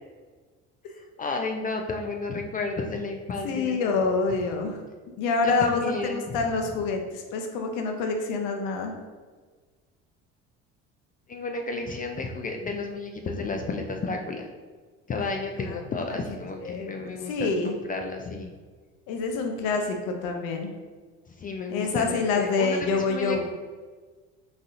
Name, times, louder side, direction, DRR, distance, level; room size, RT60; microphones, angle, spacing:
voice 1, 1.2-3.9 5.4-6.4 11.3-14.5 15.1-18.5 21.4-23.4, left 3 dB, 25° left, 3 dB, 0.3 m, -32 dB
voice 2, 3.4-4.8 5.2-8.9 15.6-15.8 16.1-16.2 16.6-17.8 19.1-20.7 21.7-23.4, left 4 dB, 75° left, 4 dB, 0.6 m, -27 dB
4.0 x 2.7 x 2.5 m, 1.4 s
hypercardioid pair, 75°, 32 cm